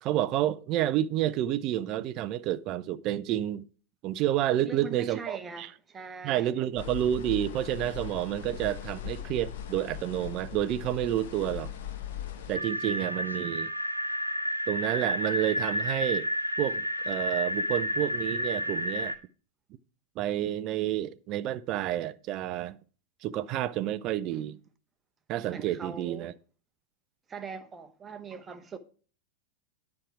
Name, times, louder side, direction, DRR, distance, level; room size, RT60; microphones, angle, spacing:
voice 1, 0.0-3.7 4.0-5.7 6.2-11.7 12.5-13.7 14.7-16.3 16.6-19.2 20.2-22.8 23.2-24.6 25.3-26.3, right 12 dB, 40° right, 0.5 m, -29 dB
voice 2, 4.5-6.6 24.3-24.4 25.5-26.3 27.3-28.8, right 5 dB, 20° right, 1.0 m, -41 dB
sound 1, 6.8-12.6, left 9 dB, 55° left, 1.1 m, -39 dB
sound 2, 12.5-19.2, equal, 90° right, 0.7 m, -31 dB
10.0 x 4.8 x 5.9 m
figure-of-eight pair, 90°, 0 cm